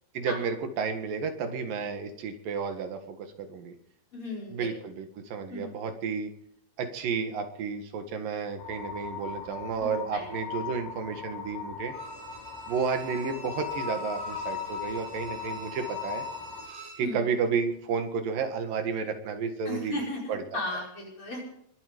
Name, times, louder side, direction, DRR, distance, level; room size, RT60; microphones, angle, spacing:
voice 1, 0.2-3.8 4.5-6.3 6.8-11.9 12.7-16.2 17.0-20.0 20.3-20.8, right 5 dB, 85° right, 6 dB, 3.5 m, -32 dB
voice 2, 4.1-4.7 5.5-5.8 9.7-10.3 17.0-17.3 19.7-21.5, left 1 dB, 40° left, -2 dB, 5.8 m, -36 dB
sound 1, 8.6-16.6, left 7 dB, 85° left, 6.9 m, -38 dB
Bowed string instrument, 11.9-17.1 17.5-17.6, right 3 dB, 70° right, 5.3 m, -45 dB
22.5 x 11.5 x 5.3 m, 0.73 s
omnidirectional pair, 3.8 m